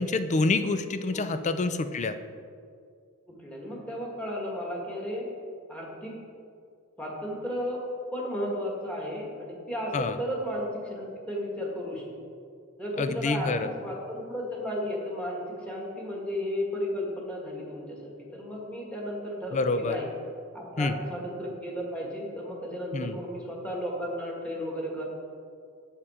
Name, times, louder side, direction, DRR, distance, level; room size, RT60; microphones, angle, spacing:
voice 1, 0.0-2.2 9.9-10.2 13.0-13.7 19.5-20.0 20.8-20.9 22.9-23.2, left 3 dB, 35° left, 11 dB, 0.4 m, -27 dB
voice 2, 1.1-1.4 3.3-5.3 5.7-6.2 7.0-7.8 8.1-12.1 12.8-20.1 20.5-25.0, equal, 5° left, -3 dB, 1.6 m, -34 dB
7.3 x 7.1 x 4.9 m, 2.3 s
head